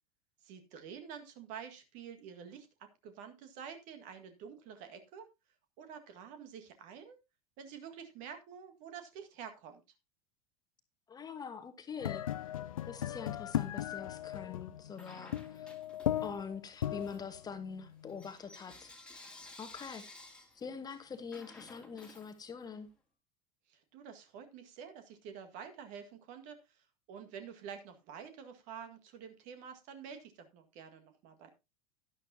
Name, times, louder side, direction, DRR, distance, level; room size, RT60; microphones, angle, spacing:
voice 1, 0.4-5.3 5.8-7.2 7.6-9.8 23.7-31.5, right 7 dB, 45° right, 1.8 m, -48 dB
voice 2, 11.1-12.2 12.9-15.7 16.2-18.9 19.6-20.0 20.5-22.9, left 6 dB, 20° left, 1.4 m, -44 dB
sound 1, 12.0-18.3, left 11 dB, 65° left, 0.4 m, -37 dB
Bell / Coin (dropping), 14.9-16.5 16.9-22.9, left 2 dB, 5° left, 2.2 m, -55 dB
12.0 x 11.0 x 2.8 m
figure-of-eight pair, 80°, 19 cm